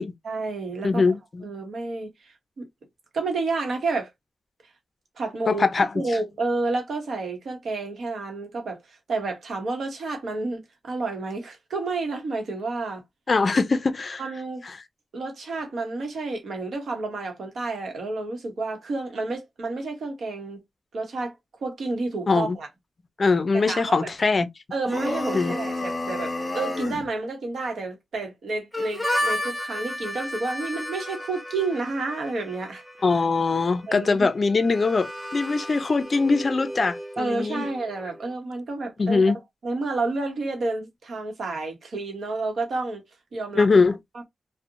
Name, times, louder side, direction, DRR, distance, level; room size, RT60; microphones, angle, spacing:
voice 1, 0.2-1.0 1.4-2.7 3.1-4.1 5.2-5.7 5.9-13.0 14.2-14.6 15.1-20.6 20.9-21.3 21.6-22.7 23.5-24.1 24.7-32.8 33.9-34.3 37.2-43.0 43.3-43.7, right 3 dB, 80° right, 0.8 m, -30 dB
voice 2, 0.8-1.4 5.5-6.0 13.3-14.2 22.3-22.6 23.2-24.5 25.3-25.6 33.0-37.7 39.0-39.4 43.6-44.0, left 4 dB, 45° left, 0.4 m, -22 dB
sound 1, 24.8-27.1, left 2 dB, 25° left, 1.0 m, -29 dB
Harmonica, 28.7-38.3, left 1 dB, ahead, 1.0 m, -34 dB
2.7 x 2.0 x 2.5 m
wide cardioid pair, 110°, 0 cm